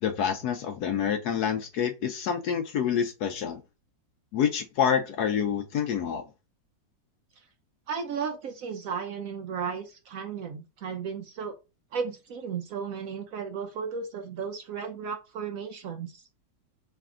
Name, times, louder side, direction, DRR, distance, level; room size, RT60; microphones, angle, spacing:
voice 1, 0.0-3.6 4.3-6.2, left 8 dB, 70° left, 1.0 m, -27 dB
voice 2, 7.9-11.5 11.9-16.2, right 6 dB, 75° right, 0.7 m, -34 dB
3.5 x 3.3 x 3.6 m
omnidirectional pair, 2.1 m